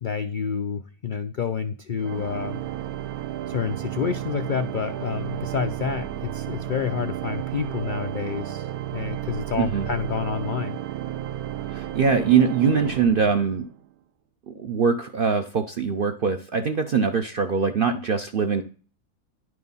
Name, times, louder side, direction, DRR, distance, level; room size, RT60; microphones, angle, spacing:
voice 1, 0.0-2.6 3.5-10.8, left 6 dB, 80° left, 8 dB, 0.4 m, -29 dB
Organ, 2.0-13.8, right 12 dB, 80° right, 1.1 m, -32 dB
voice 2, 9.6-9.9 11.7-13.7 14.5-18.6, right 6 dB, 60° right, 7 dB, 0.5 m, -22 dB
10.5 x 4.8 x 5.4 m, 0.39 s
omnidirectional pair, 1.6 m